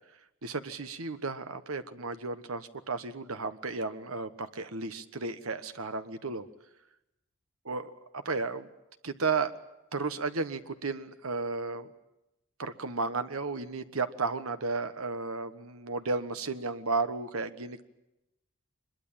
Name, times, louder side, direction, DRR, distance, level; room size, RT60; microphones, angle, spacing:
voice 1, 0.4-6.5 7.6-7.9 8.2-8.7 9.0-9.5 9.9-11.9 12.6-17.8, right 4 dB, 80° right, 10 dB, 1.3 m, -33 dB
24.0 x 22.0 x 8.9 m, 0.92 s
head